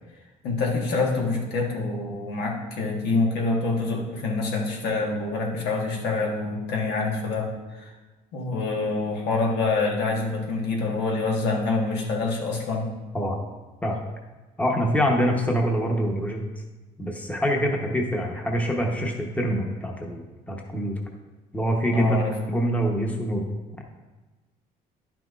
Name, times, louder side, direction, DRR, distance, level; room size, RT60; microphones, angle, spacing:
voice 1, 0.4-7.9 8.3-12.9 21.9-22.3, left 3 dB, 85° left, -1 dB, 1.4 m, -26 dB
voice 2, 14.6-16.4 17.0-21.0 21.5-22.2 22.5-23.4, equal, 10° left, 1 dB, 1.0 m, -25 dB
10.5 x 5.9 x 2.5 m, 1.2 s
cardioid pair, 110°, 17 cm